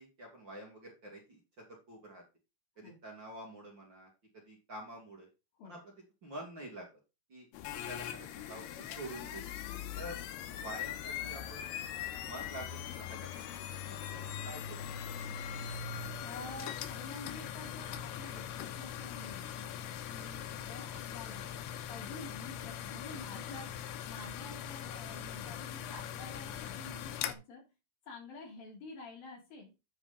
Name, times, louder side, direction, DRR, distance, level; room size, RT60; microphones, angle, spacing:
voice 1, 0.0-2.2 2.8-5.3 5.6-5.9 6.2-6.9 7.3-9.5 10.0-10.2 10.5-11.8 12.2-13.5 13.8-14.8 20.5-20.8, right 1 dB, 35° right, -1 dB, 2.6 m, -48 dB
sound 1, 7.5-27.3, left 9 dB, 90° left, 2.9 m, -41 dB
voice 2, 9.7-10.0 16.2-19.7 20.1-21.5 21.9-27.6 28.1-29.7, left 3 dB, 65° left, 0 dB, 4.8 m, -49 dB
9.7 x 4.7 x 5.2 m, 0.27 s
omnidirectional pair, 4.5 m